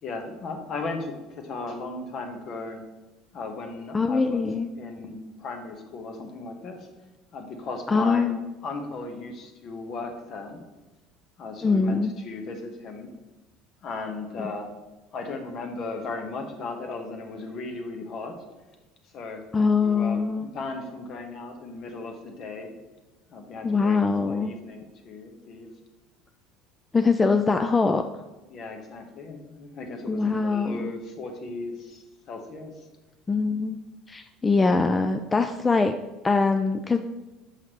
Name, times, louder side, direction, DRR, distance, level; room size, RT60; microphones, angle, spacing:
voice 1, 0.0-2.8 3.3-4.5 4.8-6.9 7.3-8.3 8.6-10.6 11.4-13.1 13.8-14.7 15.1-18.4 19.1-19.5 19.7-22.8 23.3-25.7 28.5-32.9, left 3 dB, 50° left, 5 dB, 1.1 m, -36 dB
voice 2, 3.9-4.7 7.9-8.4 11.6-12.1 19.5-20.5 23.6-24.5 26.9-28.0 30.1-30.9 33.3-33.8 34.1-35.9 36.2-37.0, left 4 dB, 20° left, 6 dB, 0.4 m, -23 dB
6.6 x 5.7 x 3.1 m, 1.1 s
supercardioid pair, 85°, 0 cm